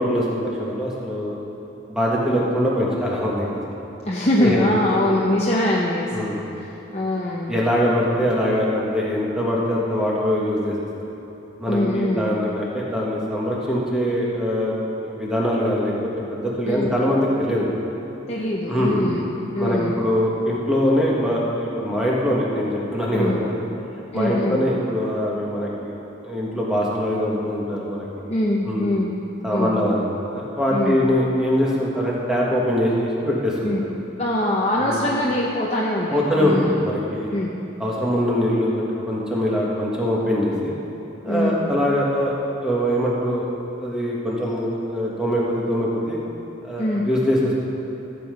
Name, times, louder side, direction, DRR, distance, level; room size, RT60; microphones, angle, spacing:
voice 1, 0.0-1.3 1.9-3.8 4.4-5.0 6.1-6.4 7.5-10.8 11.6-14.7 15.0-15.9 16.3-17.7 18.7-19.0 19.6-23.6 24.1-25.9 26.2-28.1 28.6-28.8 29.4-33.7 34.8-35.0 36.1-37.3 37.8-40.8 41.2-42.3 42.6-43.4 43.8-46.2 46.6-47.5, equal, 5° right, -5 dB, 1.7 m, -23 dB
voice 2, 4.0-6.4 6.9-7.5 11.7-12.2 16.6-16.9 18.3-19.3 19.5-20.0 23.1-23.4 24.1-24.6 28.3-29.1 29.5-29.8 30.7-31.0 33.6-33.8 34.2-36.8 37.3-37.5 41.3-41.6 46.8-47.0, left 1 dB, 30° left, -4 dB, 0.8 m, -23 dB
15.0 x 7.8 x 5.2 m, 3.0 s
head